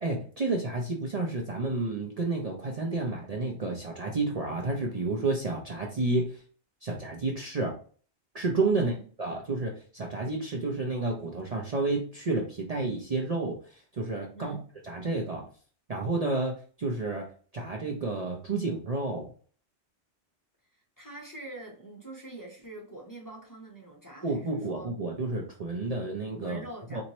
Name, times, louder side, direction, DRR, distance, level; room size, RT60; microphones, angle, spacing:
voice 1, 0.0-6.4 6.8-7.7 8.3-8.9 9.2-14.6 14.8-15.5 15.9-17.2 17.5-19.3 24.2-26.6 26.9-27.0, right 3 dB, 40° right, 0 dB, 0.6 m, -30 dB
voice 2, 8.7-9.1 14.3-14.6 21.0-24.9 26.4-27.0, right 2 dB, 20° left, -2 dB, 0.8 m, -44 dB
4.3 x 2.6 x 3.0 m, 0.42 s
omnidirectional pair, 1.1 m